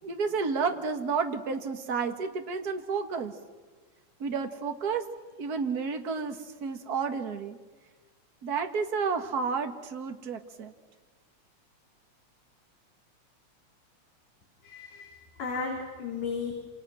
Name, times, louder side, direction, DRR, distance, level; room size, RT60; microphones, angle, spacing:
voice 1, 0.0-3.3 4.2-5.1 5.4-7.6 8.4-10.7, right 5 dB, 35° right, 6 dB, 1.9 m, -31 dB
voice 2, 14.6-16.5, left 5 dB, 60° left, -1 dB, 4.5 m, -35 dB
28.5 x 27.5 x 6.4 m, 1.3 s
omnidirectional pair, 3.4 m